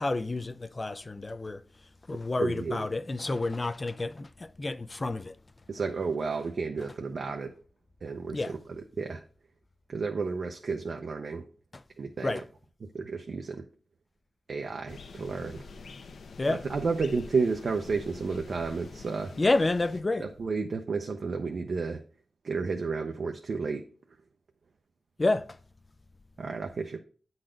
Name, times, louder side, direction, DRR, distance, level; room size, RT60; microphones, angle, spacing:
voice 1, 0.0-1.6 2.1-5.4 8.3-8.5 11.7-11.8 12.2-12.4 16.4-16.6 19.4-20.3 25.2-25.6, left 2 dB, 25° left, 0.3 m, -29 dB
voice 2, 2.4-2.9 5.7-7.5 8.0-8.6 9.0-9.2 9.9-11.5 12.0-12.4 12.9-13.7 14.5-15.6 16.5-19.3 20.2-22.0 22.4-23.8 26.4-27.0, right 4 dB, 55° right, 0.6 m, -32 dB
sound 1, 14.9-20.0, left 4 dB, 65° left, 0.7 m, -46 dB
8.9 x 4.0 x 5.1 m
wide cardioid pair, 165°, 0 cm